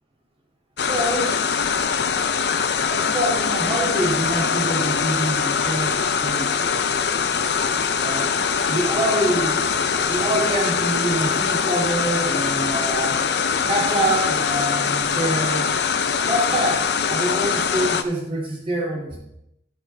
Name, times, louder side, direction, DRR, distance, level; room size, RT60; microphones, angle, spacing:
sound 1, 0.8-18.0, left 6 dB, 65° left, 0.6 m, -22 dB
voice 1, 0.9-1.4 2.8-6.9 8.0-8.3 8.7-9.6 10.1-13.2 13.7-15.7 16.2-19.2, right 1 dB, 30° right, -3 dB, 2.1 m, -25 dB
13.5 x 5.2 x 4.4 m, 0.79 s
head